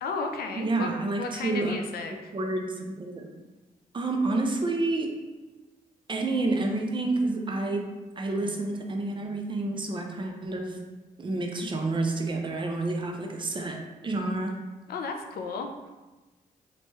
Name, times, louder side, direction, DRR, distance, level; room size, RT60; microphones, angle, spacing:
voice 1, 0.0-0.9 1.2-2.3 14.9-15.9, left 4 dB, 85° left, 4 dB, 0.4 m, -34 dB
voice 2, 0.5-1.8 2.3-3.3 3.9-5.2 6.1-10.9 11.2-14.6, right 2 dB, 30° right, 2 dB, 0.4 m, -29 dB
3.0 x 2.2 x 2.9 m, 1.1 s
cardioid pair, 85°, 15 cm